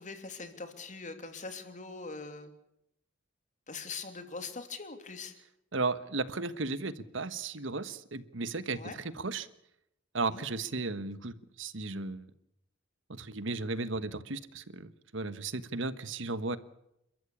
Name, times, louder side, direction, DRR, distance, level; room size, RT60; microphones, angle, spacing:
voice 1, 0.0-2.5 3.7-5.3 8.7-9.0 10.3-10.4, left 4 dB, 40° left, 7 dB, 3.1 m, -42 dB
voice 2, 5.7-9.5 10.1-12.3 13.1-16.6, right 3 dB, 70° right, 14 dB, 1.3 m, -35 dB
29.5 x 14.0 x 8.6 m, 0.81 s
head